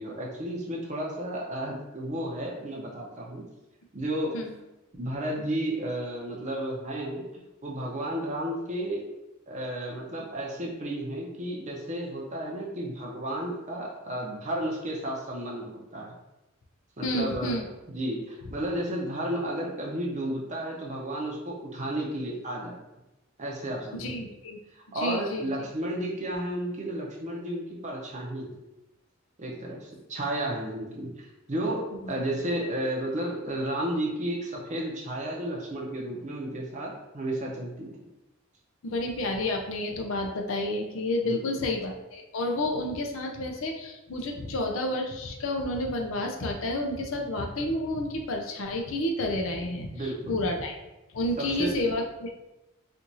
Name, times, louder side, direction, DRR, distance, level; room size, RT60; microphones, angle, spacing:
voice 1, 0.0-3.4 3.9-4.3 4.9-9.0 9.5-16.1 17.0-17.5 17.9-22.8 23.4-24.2 24.7-28.6 29.4-31.8 32.1-37.9 41.3-41.4 49.9-50.4 51.4-51.7, right 1 dB, 35° right, -2 dB, 0.7 m, -32 dB
voice 2, 17.0-17.7 23.9-24.6 24.9-25.5 32.0-32.1 38.8-50.8 51.1-52.3, left 1 dB, 70° left, 2 dB, 0.5 m, -30 dB
4.4 x 2.5 x 2.7 m, 0.98 s
head